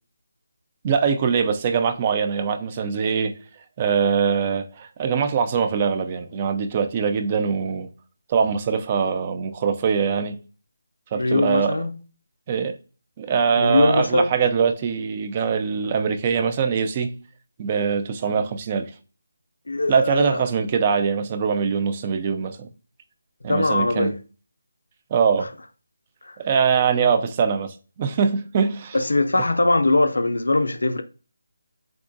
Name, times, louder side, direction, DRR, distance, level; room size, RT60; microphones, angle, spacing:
voice 1, 0.8-3.3 3.8-7.9 8.3-10.4 11.1-11.7 12.5-12.7 13.2-17.1 17.6-18.9 19.9-22.7 23.4-24.1 25.1-25.5 26.4-29.0 29.4-29.5, right 6 dB, 30° right, 0.3 m, -22 dB
voice 2, 11.1-11.9 13.6-14.3 19.7-20.4 23.5-24.2 26.2-26.4 28.9-31.0, left 2 dB, 80° left, 0.4 m, -21 dB
3.7 x 2.3 x 2.5 m
figure-of-eight pair, 160°, 0 cm